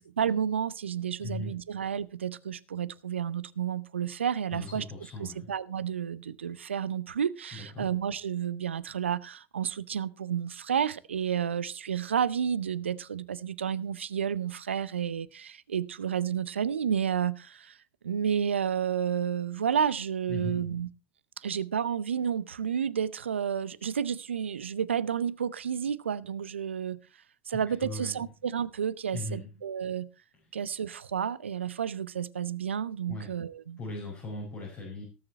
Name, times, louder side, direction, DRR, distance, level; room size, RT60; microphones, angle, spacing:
voice 1, 0.2-4.8 5.2-17.8 18.0-20.9 21.4-27.0 27.5-30.1 30.5-33.8, right 8 dB, 85° right, 0.6 m, -31 dB
voice 2, 1.2-1.6 4.5-5.5 7.5-7.9 20.3-20.6 27.6-28.2 29.1-29.5 33.1-33.3 33.8-35.0, left 2 dB, 40° left, 5.5 m, -38 dB
18.0 x 6.8 x 4.3 m
hypercardioid pair, 80°, 6 cm